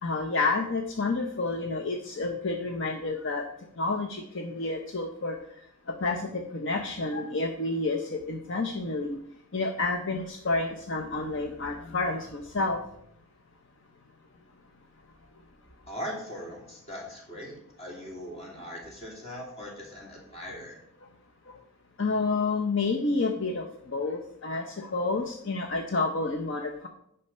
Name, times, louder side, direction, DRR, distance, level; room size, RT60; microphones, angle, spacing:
voice 1, 0.0-3.5 3.7-9.2 9.5-12.8 21.0-21.1 21.5-21.6 22.0-26.9, left 3 dB, 55° left, 4 dB, 0.7 m, -30 dB
voice 2, 15.9-20.8, equal, 30° left, -2 dB, 2.8 m, -40 dB
9.7 x 5.7 x 5.4 m, 0.73 s
head